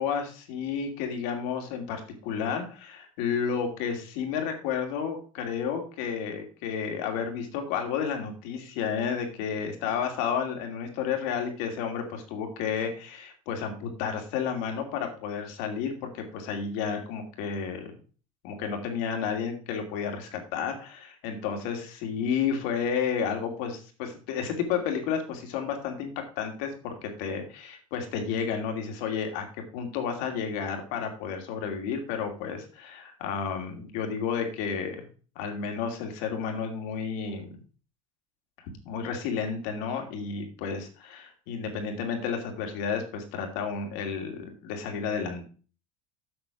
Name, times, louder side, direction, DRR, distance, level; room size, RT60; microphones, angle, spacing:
voice 1, 0.0-17.9 18.4-29.4 29.7-35.1 35.4-37.6 38.8-45.5, left 6 dB, 70° left, 4 dB, 2.7 m, -31 dB
7.9 x 6.3 x 5.9 m, 0.38 s
hypercardioid pair, 90°, 17 cm